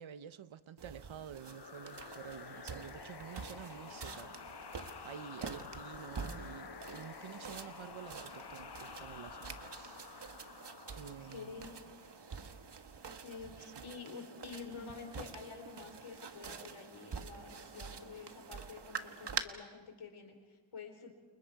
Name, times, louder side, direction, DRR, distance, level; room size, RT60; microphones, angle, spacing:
voice 1, 0.0-4.5 5.0-10.4 10.9-11.7 13.8-13.9, right 9 dB, 75° right, 1.0 m, -50 dB
sound 1, 0.8-19.4, right 5 dB, 55° right, 1.6 m, -47 dB
sound 2, 1.4-12.7, left 7 dB, 50° left, 1.0 m, -51 dB
voice 2, 11.0-11.8 13.1-21.1, left 5 dB, 85° left, 4.4 m, -49 dB
29.5 x 29.5 x 4.8 m
wide cardioid pair, 75°, 48 cm